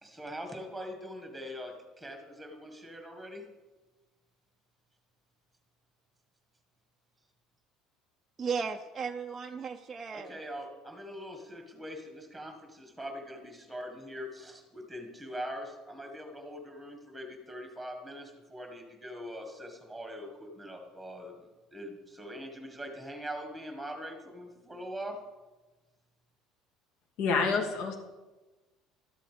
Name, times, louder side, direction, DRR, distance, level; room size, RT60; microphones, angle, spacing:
voice 1, 0.0-3.5 10.1-25.2, equal, ahead, 1.7 m, -42 dB
voice 2, 8.4-10.4, right 5 dB, 20° right, 0.5 m, -35 dB
voice 3, 27.2-28.0, left 4 dB, 60° left, 2.5 m, -27 dB
13.5 x 12.0 x 5.1 m
cardioid pair, 160°, 0 cm